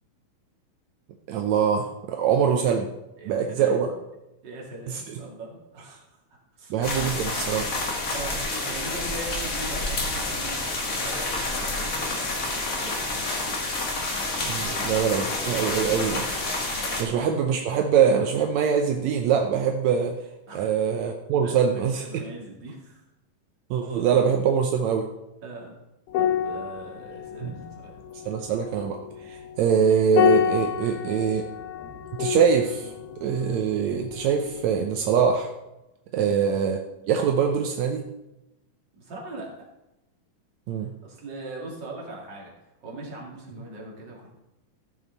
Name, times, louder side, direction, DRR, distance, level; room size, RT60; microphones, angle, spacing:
voice 1, 1.3-2.9 3.2-3.9 6.7-7.7 14.4-16.3 17.0-20.1 20.5-22.2 23.7-25.1 27.4-27.5 28.2-31.5 32.1-32.9 33.2-35.5 36.1-36.8 37.1-38.1 40.7-40.9, right 7 dB, 80° right, 4 dB, 1.6 m, -23 dB
voice 2, 3.2-4.0 4.4-6.2 6.6-6.8 8.1-13.4 14.6-15.0 16.6-16.9 20.5-20.8 21.4-23.0 25.4-25.7 26.2-28.1 36.2-36.5 39.0-39.7 40.8-42.5 42.8-44.3, right 2 dB, 35° right, -3 dB, 2.7 m, -41 dB
sound 1, 6.8-17.0, left 2 dB, 50° left, 0.9 m, -29 dB
sound 2, 26.1-34.8 35.1-35.3, left 9 dB, 90° left, 2.9 m, -29 dB
15.5 x 7.1 x 4.0 m, 0.95 s
omnidirectional pair, 4.1 m